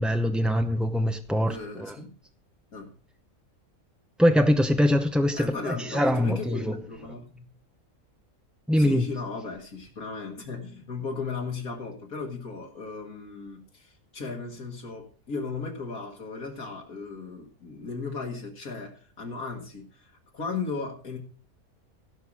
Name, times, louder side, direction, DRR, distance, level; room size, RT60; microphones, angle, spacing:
voice 1, 0.0-2.0 4.2-6.8 7.0-7.1 8.7-9.1, equal, ahead, 0.3 m, -23 dB
voice 2, 1.5-2.1 2.7-2.9 5.3-7.5 8.8-21.2, left 4 dB, 80° left, 2.4 m, -36 dB
16.0 x 5.7 x 6.3 m
omnidirectional pair, 1.5 m